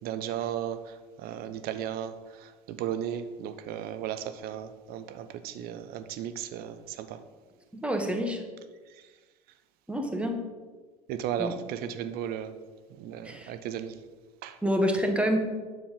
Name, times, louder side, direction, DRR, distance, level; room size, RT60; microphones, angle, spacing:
voice 1, 0.0-7.2 11.1-12.5 13.0-13.9 14.4-14.6, right 9 dB, 50° right, 10 dB, 0.9 m, -35 dB
voice 2, 7.7-8.4 9.9-10.4 11.4-11.5 13.3-13.5 14.6-15.4, equal, 5° right, 3 dB, 1.7 m, -27 dB
9.5 x 7.0 x 5.3 m, 1.3 s
figure-of-eight pair, 70°, 20 cm